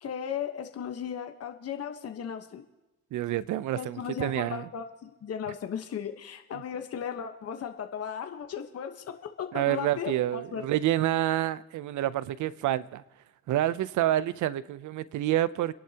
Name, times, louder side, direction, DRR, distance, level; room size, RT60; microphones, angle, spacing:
voice 1, 0.0-2.6 3.7-10.6, left 8 dB, 55° left, 1.2 m, -36 dB
voice 2, 3.1-4.7 9.5-13.0 13.5-15.7, right 13 dB, 75° right, 0.7 m, -28 dB
28.5 x 11.0 x 2.9 m
cardioid pair, 90°, 30 cm